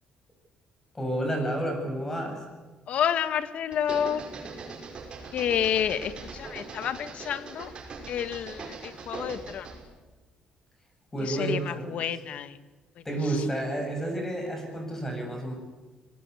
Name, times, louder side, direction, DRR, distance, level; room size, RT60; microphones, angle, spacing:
voice 1, 0.9-2.4 11.1-12.2 13.0-15.6, right 1 dB, 15° left, 3 dB, 7.7 m, -30 dB
voice 2, 2.9-4.2 5.3-7.7 8.1-9.7 11.2-12.6, left 9 dB, 60° left, 13 dB, 1.4 m, -29 dB
sound 1, 3.7-9.9, right 4 dB, 40° right, 6.0 m, -41 dB
26.0 x 19.5 x 8.4 m, 1.3 s
cardioid pair, 125°, 2 cm